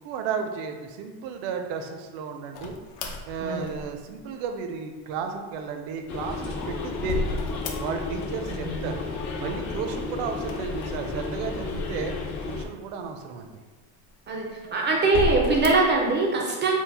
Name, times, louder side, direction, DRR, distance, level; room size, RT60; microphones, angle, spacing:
voice 1, 0.0-2.7 3.3-7.4 7.8-9.0 9.4-12.1 12.5-13.5 14.7-14.8, right 5 dB, 70° right, 5 dB, 0.6 m, -33 dB
sound 1, 2.5-4.2 6.0-8.3 8.5-9.2 10.4-12.5 13.1-13.2 14.0-14.6 15.0-16.0, left 2 dB, 80° left, 0.8 m, -34 dB
sound 2, 6.1-12.6, left 4 dB, 40° left, 0.5 m, -33 dB
voice 2, 8.5-8.8 14.3-14.5 14.7-16.8, right 3 dB, 25° right, -1 dB, 0.3 m, -22 dB
4.5 x 2.1 x 4.0 m, 1.3 s
cardioid pair, 160°, 46 cm